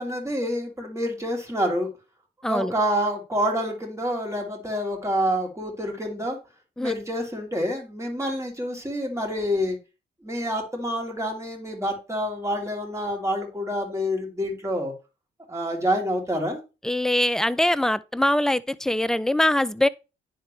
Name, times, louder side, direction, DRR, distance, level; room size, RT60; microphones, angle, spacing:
voice 1, 0.0-1.9 2.4-6.4 6.8-9.8 10.2-14.9 15.5-16.6, equal, 15° right, 3.0 m, -27 dB
voice 2, 2.4-2.7 6.8-6.9 16.8-19.9, left 1 dB, ahead, 0.4 m, -23 dB
10.0 x 3.8 x 3.2 m
supercardioid pair, 55°, 21 cm